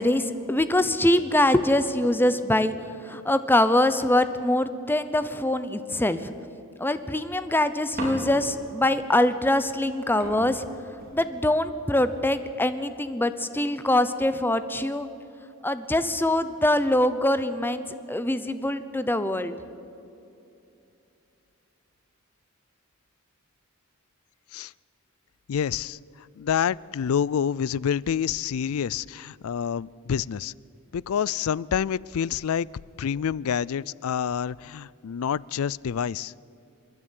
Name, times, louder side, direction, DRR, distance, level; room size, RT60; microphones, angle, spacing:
voice 1, 0.0-2.7 3.0-6.3 6.8-10.7 11.1-15.1 15.6-19.5, left 1 dB, 10° left, 12 dB, 0.8 m, -23 dB
sound 1, 8.0-8.7 9.8-9.9 10.2-11.7 12.4-12.9, right 1 dB, 45° right, 4.6 m, -38 dB
voice 2, 25.5-26.0 26.4-30.5 30.9-32.7 33.0-36.3, left 8 dB, 80° left, 24 dB, 0.4 m, -27 dB
27.5 x 11.0 x 9.8 m, 2.7 s
head